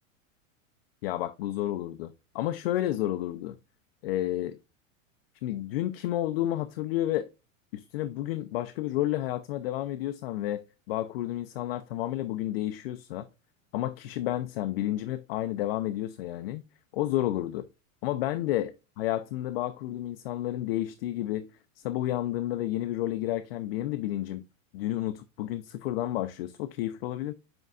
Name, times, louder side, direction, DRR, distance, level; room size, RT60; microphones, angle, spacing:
voice 1, 1.0-3.5 4.0-4.6 5.4-7.3 7.7-10.6 10.9-13.3 13.7-16.6 16.9-17.7 18.0-21.5 21.8-24.4 24.7-27.3, left 14 dB, 50° left, 0.5 m, -31 dB
7.7 x 5.2 x 2.4 m
supercardioid pair, 170°, 40 cm